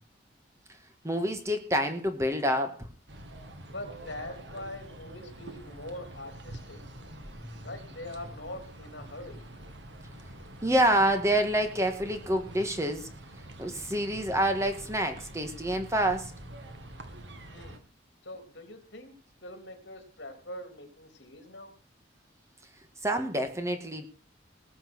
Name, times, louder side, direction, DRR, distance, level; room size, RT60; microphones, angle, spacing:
voice 1, 1.0-2.9 7.4-7.5 10.0-10.2 10.6-13.1 13.6-16.3 23.0-24.1, right 1 dB, 15° right, 7 dB, 2.0 m, -27 dB
sound 1, 3.1-17.8, right 1 dB, 70° right, 2.4 m, -46 dB
voice 2, 3.7-6.8 7.6-9.4 17.5-17.8 18.2-19.1 19.4-21.7, left 1 dB, 65° left, 6 dB, 3.5 m, -43 dB
20.0 x 7.7 x 6.3 m, 0.37 s
head